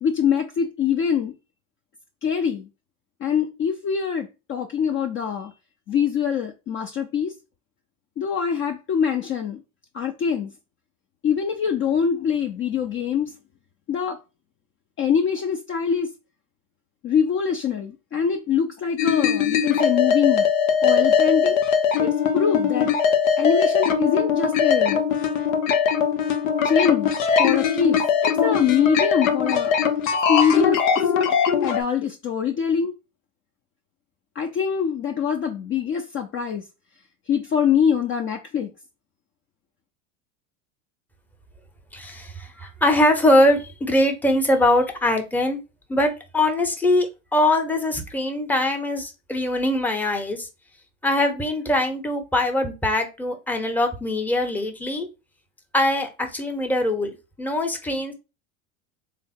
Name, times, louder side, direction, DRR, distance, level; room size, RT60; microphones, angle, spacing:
voice 1, 0.0-1.3 2.2-2.7 3.2-5.5 5.9-7.3 8.2-9.6 9.9-10.5 11.2-13.3 13.9-14.2 15.0-16.1 17.0-20.4 20.8-21.6 22.0-22.1 22.3-23.0 23.4-25.0 26.6-27.1 27.4-29.7 30.3-31.1 31.6-33.0 34.4-36.6 37.3-38.7, left 7 dB, 35° left, 0.5 m, -23 dB
sound 1, 19.0-31.8, left 7 dB, 90° left, 0.7 m, -21 dB
voice 2, 41.9-45.6 45.9-50.5 51.0-55.1 55.7-58.1, left 1 dB, 5° left, 0.7 m, -22 dB
3.3 x 2.0 x 4.2 m
hypercardioid pair, 95°, 39 cm